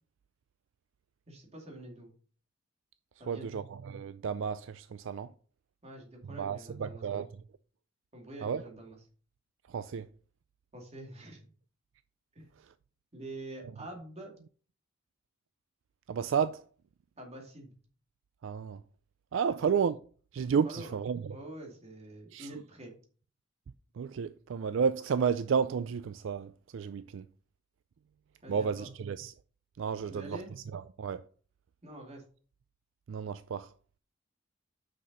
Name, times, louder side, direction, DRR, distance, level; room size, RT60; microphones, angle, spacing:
voice 1, 1.3-2.1 3.2-3.6 5.8-7.2 8.1-9.0 10.7-11.5 12.4-12.5 13.1-14.3 17.2-17.8 19.5-19.6 20.6-20.9 21.3-22.9 28.4-28.9 30.1-30.5 31.8-32.2, right 1 dB, 35° right, 2.3 m, -46 dB
voice 2, 3.3-5.3 6.3-7.3 8.4-8.6 9.7-10.1 16.1-16.6 18.4-18.8 19.3-20.0 20.3-21.4 22.3-22.5 23.9-27.3 28.5-29.3 29.8-30.4 30.7-31.3 33.1-33.7, right 6 dB, 70° right, 0.4 m, -32 dB
6.4 x 6.0 x 5.3 m
head